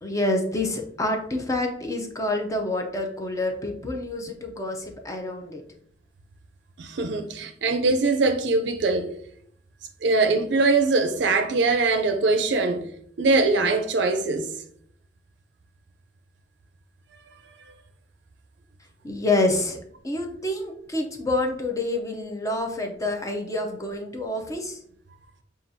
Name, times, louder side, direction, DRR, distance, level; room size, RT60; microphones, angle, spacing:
voice 1, 0.0-5.6 19.0-19.8 20.0-24.8, left 2 dB, 20° left, 0.5 m, -27 dB
voice 2, 6.8-9.1 10.0-12.8 13.2-14.5, right 3 dB, 75° right, 0.4 m, -22 dB
5.9 x 2.4 x 2.6 m
head